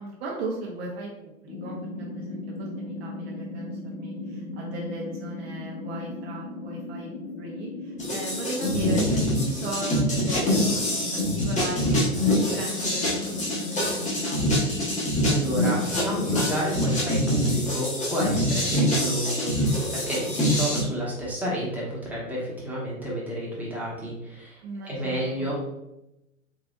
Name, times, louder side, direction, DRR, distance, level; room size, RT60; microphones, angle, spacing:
voice 1, 0.0-3.7 4.0-14.6 24.6-25.5, right 2 dB, 50° right, -2 dB, 0.8 m, -37 dB
sound 1, 1.5-16.5, left 2 dB, 65° left, 1.4 m, -37 dB
sound 2, 8.0-20.8, left 1 dB, 15° left, 1.1 m, -25 dB
voice 2, 15.3-25.5, equal, 5° right, -6 dB, 1.1 m, -30 dB
3.8 x 3.3 x 2.4 m, 0.91 s
hypercardioid pair, 110°, 42 cm